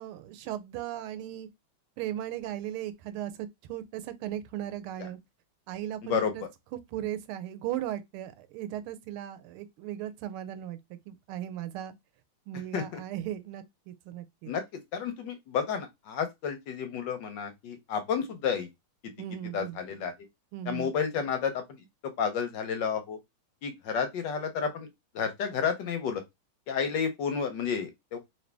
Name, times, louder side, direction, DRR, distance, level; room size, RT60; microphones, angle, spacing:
voice 1, 0.0-1.5 2.0-5.2 5.7-6.4 6.7-11.9 12.5-14.5 19.2-19.8 20.5-20.9, right 12 dB, 90° right, 1.5 m, -37 dB
voice 2, 6.0-6.3 12.7-13.0 14.5-14.6 14.9-18.7 19.5-20.1 20.7-21.8 22.2-23.2 23.6-24.9 25.1-26.2 26.7-28.2, left 6 dB, 65° left, 1.2 m, -31 dB
4.0 x 2.8 x 3.3 m
omnidirectional pair, 2.3 m